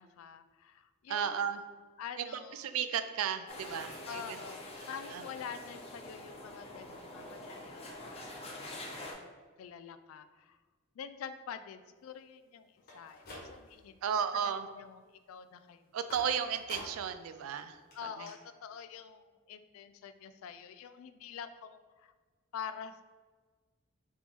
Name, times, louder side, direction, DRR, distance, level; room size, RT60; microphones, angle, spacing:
voice 1, 0.0-1.5 2.0-2.7 4.1-9.3 9.6-10.6 11.0-15.9 16.2-16.4 17.9-22.1 22.5-23.0, left 7 dB, 85° left, 11 dB, 0.3 m, -47 dB
voice 2, 1.1-1.6 2.2-2.3 2.5-4.4 5.1-5.2 14.0-14.7 15.9-17.8 18.2-18.3, right 8 dB, 90° right, 10 dB, 0.3 m, -34 dB
sound 1, 3.5-9.1, left 1 dB, 30° left, 0.6 m, -46 dB
sound 2, 12.8-13.9 14.3-14.8 16.1-17.2 17.5-17.6 17.9-18.0 18.3-18.4, left 1 dB, 50° left, 1.2 m, -48 dB
4.2 x 2.9 x 3.5 m, 1.5 s
head